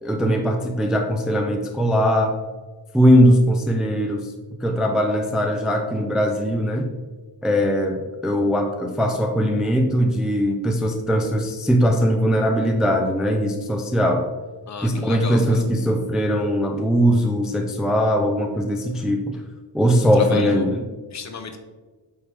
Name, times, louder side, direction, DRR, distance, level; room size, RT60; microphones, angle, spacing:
voice 1, 0.0-2.3 2.9-4.3 4.6-6.9 7.4-14.3 14.8-19.4 19.7-20.8, equal, ahead, 3 dB, 0.3 m, -20 dB
voice 2, 14.7-15.6 20.0-20.7 21.1-21.6, left 3 dB, 45° left, 7 dB, 0.7 m, -33 dB
8.2 x 4.7 x 3.4 m, 1.3 s
wide cardioid pair, 170°, 40 cm